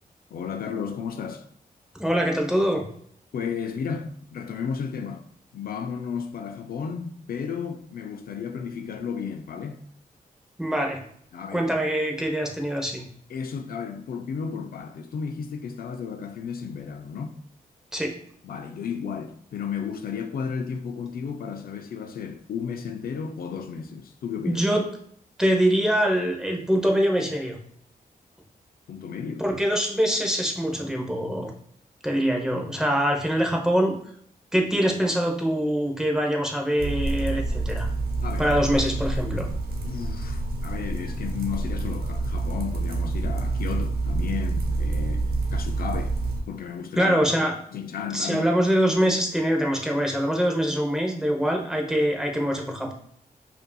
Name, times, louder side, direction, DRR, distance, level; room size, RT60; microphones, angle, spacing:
voice 1, 0.3-1.5 3.3-5.2 5.5-9.8 11.3-11.7 13.3-17.4 18.4-24.6 28.9-29.4 38.2-38.5 39.8-46.2 46.5-47.1 47.7-48.5, left 6 dB, 70° left, 0.4 m, -33 dB
voice 2, 2.0-2.9 10.6-11.0 11.5-13.0 17.9-18.1 24.4-24.8 25.4-27.6 29.4-31.5 32.0-34.0 34.5-37.9 38.4-39.5 47.0-47.5 48.1-52.9, equal, 5° right, 0.8 m, -24 dB
sound 1, 36.8-46.4, right 2 dB, 85° right, 0.8 m, -27 dB
5.2 x 2.6 x 2.2 m
cardioid pair, 75°, 16 cm